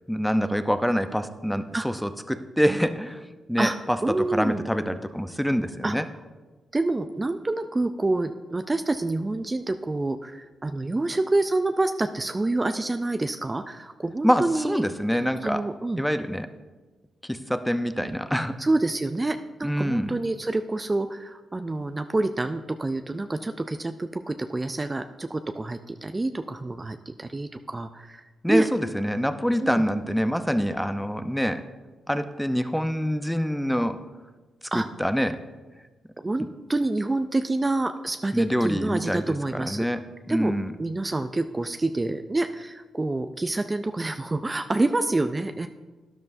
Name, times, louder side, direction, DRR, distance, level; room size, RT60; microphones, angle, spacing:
voice 1, 0.1-3.2 3.5-6.0 14.2-15.6 16.0-16.5 17.2-18.6 19.6-20.1 28.4-31.6 32.1-34.0 34.7-35.4 38.3-39.3 39.5-40.0 40.3-40.7, equal, ahead, 10 dB, 0.7 m, -25 dB
voice 2, 4.0-4.6 5.8-6.0 6.7-14.8 15.4-16.0 18.6-28.7 29.6-29.8 34.7-34.9 36.2-39.9 40.3-45.7, right 2 dB, 25° right, 8 dB, 0.5 m, -27 dB
12.5 x 10.5 x 2.7 m, 1.3 s
supercardioid pair, 50°, 0 cm